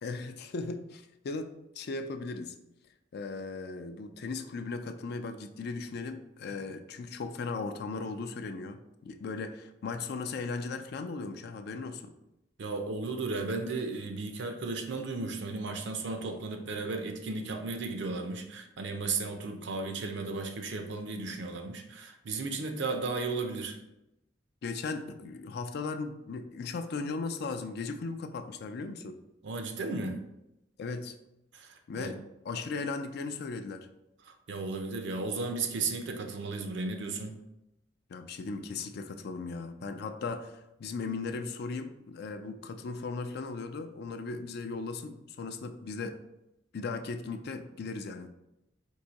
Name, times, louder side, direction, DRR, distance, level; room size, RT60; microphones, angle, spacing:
voice 1, 0.0-2.6 3.1-12.1 24.6-29.2 30.8-31.2 31.9-33.9 38.1-46.2 46.7-48.3, left 4 dB, 60° left, 8 dB, 0.4 m, -37 dB
voice 2, 12.6-23.8 29.4-30.2 31.5-32.1 34.3-37.4, right 3 dB, 70° right, 6 dB, 0.6 m, -35 dB
4.6 x 2.7 x 4.0 m, 0.89 s
head